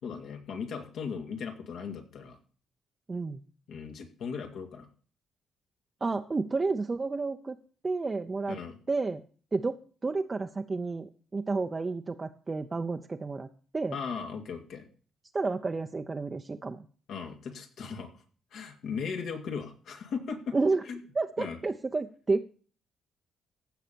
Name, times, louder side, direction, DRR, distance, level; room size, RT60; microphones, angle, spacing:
voice 1, 0.0-2.4 3.7-4.9 8.5-8.8 13.9-14.9 17.1-18.1 18.5-20.5 20.9-21.0 21.4-21.6, left 6 dB, 70° left, 4 dB, 2.3 m, -37 dB
voice 2, 3.1-3.4 6.0-7.6 7.8-8.6 8.9-9.2 9.5-13.5 13.7-14.0 15.3-16.9 20.5-20.8 21.1-22.4, right 3 dB, 30° right, 5 dB, 0.7 m, -31 dB
15.5 x 5.7 x 6.9 m, 0.42 s
cardioid pair, 90°, 0 cm